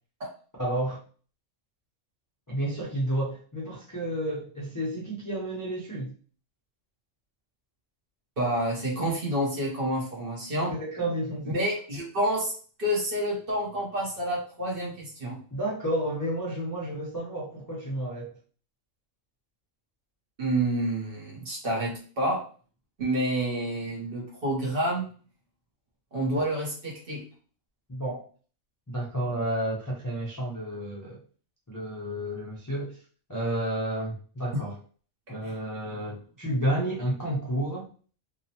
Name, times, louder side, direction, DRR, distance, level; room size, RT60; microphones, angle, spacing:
voice 1, 0.6-1.0 2.5-6.1 10.7-11.5 15.5-18.3 26.2-26.4 27.9-28.2 28.9-31.2 31.7-33.0 33.3-34.7 35.3-37.9, right 1 dB, 30° left, -6 dB, 0.3 m, -31 dB
voice 2, 8.4-10.7 11.5-12.5 12.8-15.4 20.4-22.4 23.0-25.1 26.1-27.2 35.4-35.5 35.8-36.0, right 1 dB, 50° right, -2 dB, 0.9 m, -28 dB
2.8 x 2.0 x 2.7 m, 0.41 s
omnidirectional pair, 1.3 m